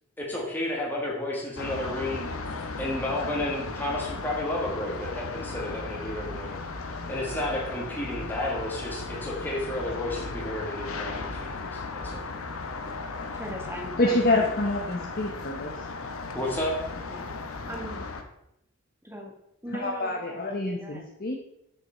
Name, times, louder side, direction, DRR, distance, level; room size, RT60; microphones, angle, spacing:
voice 1, 0.2-2.3 2.8-6.5 7.1-12.2 16.3-16.8, left 1 dB, 10° left, -4 dB, 1.4 m, -32 dB
sound 1, 1.6-18.2, left 3 dB, 75° left, 1.0 m, -36 dB
voice 2, 13.3-14.5 17.1-17.4 17.7-18.1 19.0-19.3 19.6-21.0, equal, 10° right, 1 dB, 1.4 m, -39 dB
voice 3, 14.0-15.9 19.7-21.4, left 2 dB, 45° left, 0 dB, 0.9 m, -27 dB
8.0 x 6.9 x 4.3 m, 0.79 s
head